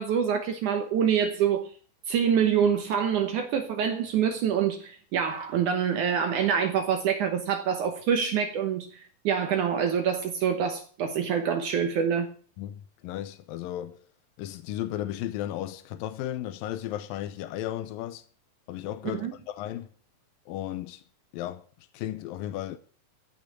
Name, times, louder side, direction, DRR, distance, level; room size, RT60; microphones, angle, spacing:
voice 1, 0.0-1.7 2.1-12.3 19.1-19.3, right 7 dB, 70° right, 2.4 m, -26 dB
voice 2, 12.6-14.0 14.4-18.2 18.7-19.9 20.5-21.0 21.3-21.6 21.9-22.8, left 12 dB, 85° left, 2.5 m, -34 dB
15.0 x 5.7 x 9.1 m
omnidirectional pair, 4.0 m